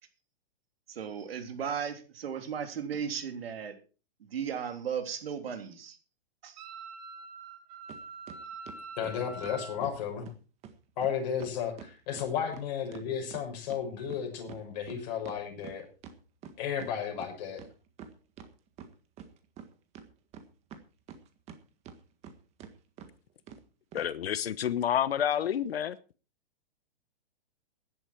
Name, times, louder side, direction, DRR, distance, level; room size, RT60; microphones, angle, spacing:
voice 1, 0.9-3.8 4.2-6.0 6.4-6.7, right 7 dB, 75° right, 3.5 m, -36 dB
Wind instrument woodwind instrument, 6.6-9.8, right 3 dB, 45° right, 4.3 m, -44 dB
sound 1, 7.9-8.0 8.3-10.0 10.2-10.3 10.6-10.8 11.0-11.1 11.4-13.8 14.1-16.9 17.2-17.3 17.6-18.5 18.8-19.7 19.9-21.6 21.8-22.3 22.6-22.7 23.0-23.1 23.5-23.6 23.9-24.1, right 7 dB, 20° right, 1.6 m, -47 dB
voice 2, 9.0-10.3 11.0-15.8 16.6-17.6, left 8 dB, 45° left, 6.6 m, -33 dB
voice 3, 23.9-26.0, left 9 dB, 85° left, 1.1 m, -29 dB
15.5 x 11.0 x 4.5 m
hypercardioid pair, 155°, 30 cm